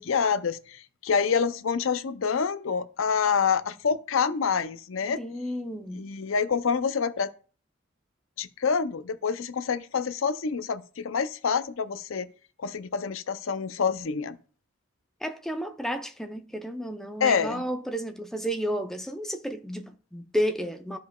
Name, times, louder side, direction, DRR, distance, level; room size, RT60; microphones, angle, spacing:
voice 1, 0.0-5.2 6.0-7.3 8.4-12.3 12.6-14.4 17.2-17.6, left 6 dB, 75° left, 0.5 m, -27 dB
voice 2, 5.2-6.1 15.2-21.0, equal, ahead, 0.6 m, -32 dB
13.5 x 5.1 x 2.3 m
head